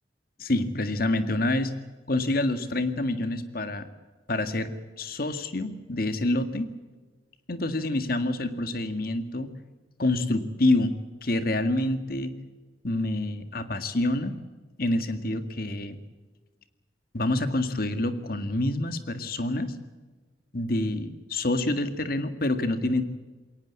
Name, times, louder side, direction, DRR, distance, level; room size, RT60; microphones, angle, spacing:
voice 1, 0.4-1.7 2.1-3.9 4.3-6.7 7.5-9.5 10.0-10.9 11.2-12.3 12.8-14.4 14.8-16.0 17.1-19.7 20.5-23.0, left 2 dB, 55° left, 9 dB, 1.9 m, -27 dB
22.0 x 18.5 x 8.3 m, 1.3 s
head